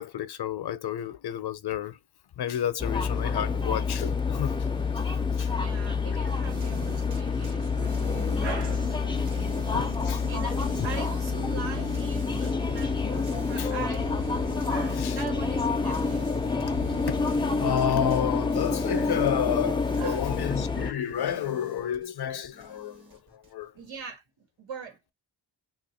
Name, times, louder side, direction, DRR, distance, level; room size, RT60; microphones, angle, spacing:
voice 1, 0.0-2.0 2.4-4.6 5.4-5.5 9.7-10.3 10.8-10.9 13.3-13.7 15.0-15.2 16.9-17.2 17.6-23.7, left 9 dB, 60° left, 0.6 m, -31 dB
sound 1, 2.8-20.9, left 4 dB, 10° left, 0.4 m, -28 dB
voice 2, 5.4-9.7 10.0-14.1 14.7-16.2 20.0-20.3 23.7-25.1, right 6 dB, 90° right, 1.3 m, -41 dB
sound 2, 6.3-23.5, right 3 dB, 45° right, 0.9 m, -42 dB
3.0 x 2.4 x 4.1 m
wide cardioid pair, 175°, 45 cm